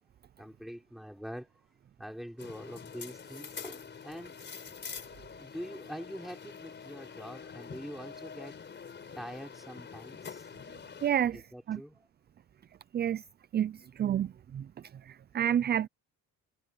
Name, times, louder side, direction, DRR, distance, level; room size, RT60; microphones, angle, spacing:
voice 1, 0.4-1.5 2.0-4.4 5.4-8.6 9.2-10.5 11.3-12.1, equal, ahead, 5.7 m, -44 dB
sound 1, 2.4-11.1, left 6 dB, 30° left, 4.5 m, -46 dB
voice 2, 11.0-11.4 11.7-11.8 12.9-13.2 13.5-14.7 15.1-15.9, right 10 dB, 30° right, 0.4 m, -29 dB
cardioid pair, 130°, 35 cm